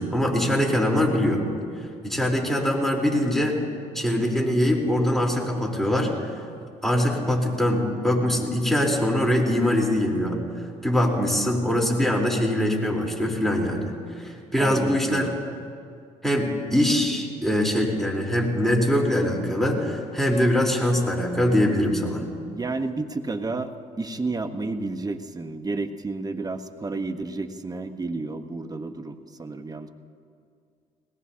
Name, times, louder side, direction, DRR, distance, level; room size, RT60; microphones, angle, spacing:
voice 1, 0.0-1.4 2.0-3.6 3.9-6.1 6.8-10.4 10.8-13.9 14.2-15.3 16.2-22.2, left 1 dB, ahead, -1 dB, 3.7 m, -23 dB
voice 2, 14.6-15.4 22.5-29.9, right 3 dB, 25° right, 8 dB, 1.1 m, -31 dB
20.5 x 18.5 x 2.8 m, 2.3 s
supercardioid pair, 65°, 16 cm